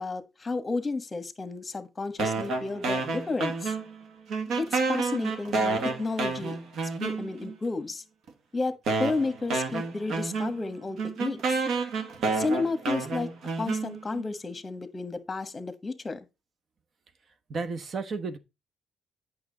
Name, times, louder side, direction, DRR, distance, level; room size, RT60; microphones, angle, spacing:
voice 1, 0.0-3.8 4.6-6.6 7.0-8.0 8.5-8.7 9.0-11.6 12.3-13.3 13.6-16.3, left 3 dB, 25° left, 1.4 m, -32 dB
sound 1, 2.2-4.0 4.3-7.5 8.3-8.4 8.9-14.3, right 4 dB, 70° right, 1.8 m, -30 dB
voice 2, 17.5-18.4, right 4 dB, 50° right, 1.3 m, -32 dB
8.6 x 6.2 x 4.0 m
cardioid pair, 95°, 0 cm